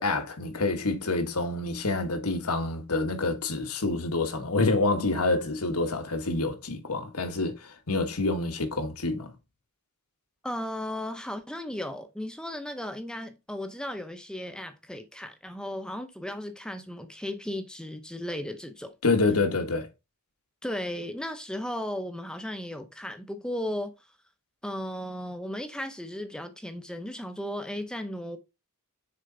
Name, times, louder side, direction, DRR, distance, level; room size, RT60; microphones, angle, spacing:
voice 1, 0.0-9.3 19.0-19.9, left 3 dB, 75° left, 1.4 m, -27 dB
voice 2, 10.4-18.9 20.6-23.9 24.6-28.4, left 1 dB, 5° left, 0.7 m, -35 dB
6.6 x 4.5 x 3.9 m
head